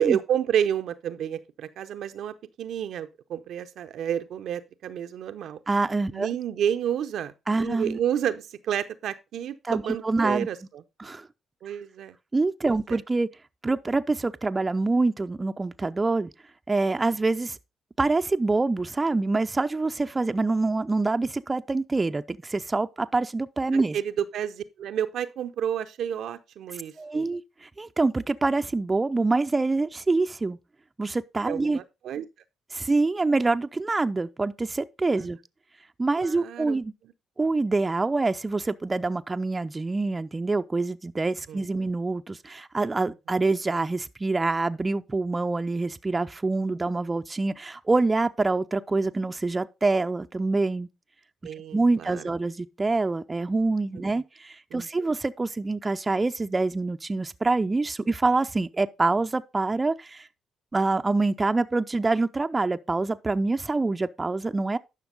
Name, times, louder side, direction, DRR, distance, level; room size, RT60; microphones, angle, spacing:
voice 1, 0.0-5.6 6.1-10.8 11.6-12.2 12.9-13.0 23.9-27.3 31.4-32.3 35.2-35.3 36.2-36.8 41.5-41.6 51.4-52.3 53.9-54.0 54.7-55.1, right 9 dB, 65° right, 0.6 m, -30 dB
voice 2, 5.7-6.3 7.5-8.0 9.6-10.5 11.0-11.3 12.3-13.3 13.6-16.3 16.7-17.6 18.0-24.0 27.0-30.6 31.0-31.8 32.7-35.4 36.0-36.9 37.4-50.9 51.7-60.3 60.7-64.8, right 3 dB, 25° right, 0.5 m, -26 dB
11.0 x 5.8 x 3.9 m
hypercardioid pair, 45°, 0 cm